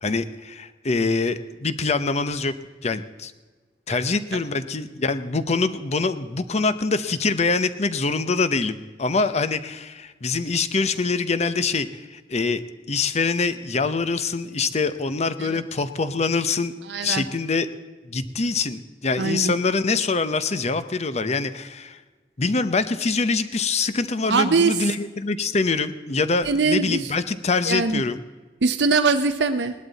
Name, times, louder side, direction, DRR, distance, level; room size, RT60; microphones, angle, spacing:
voice 1, 0.0-2.5 2.8-3.3 3.9-12.6 12.9-16.7 17.0-17.7 18.0-22.0 22.4-28.2, left 4 dB, 40° left, 12 dB, 0.7 m, -24 dB
voice 2, 16.9-17.2 19.2-19.5 24.3-24.8 26.4-27.1 27.7-28.0 28.6-29.7, right 4 dB, 75° right, 7 dB, 0.7 m, -22 dB
18.5 x 12.0 x 4.0 m, 1.3 s
head